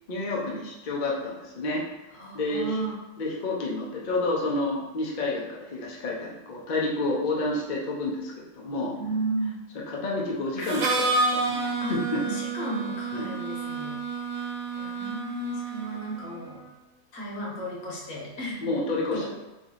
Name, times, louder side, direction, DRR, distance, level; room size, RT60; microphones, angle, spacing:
voice 1, 0.1-1.8 2.3-2.8 3.2-8.9 9.9-12.2 13.1-13.3 18.6-19.2, left 2 dB, 40° left, -3 dB, 0.8 m, -29 dB
voice 2, 2.1-2.9 8.9-9.5 11.8-14.0 14.7-16.6 17.1-18.7 19.1-19.3, right 1 dB, 75° left, -5 dB, 1.7 m, -34 dB
Harmonica, 10.6-16.4, right 3 dB, 70° right, 1.0 m, -29 dB
3.6 x 3.3 x 4.0 m, 1.1 s
omnidirectional pair, 1.4 m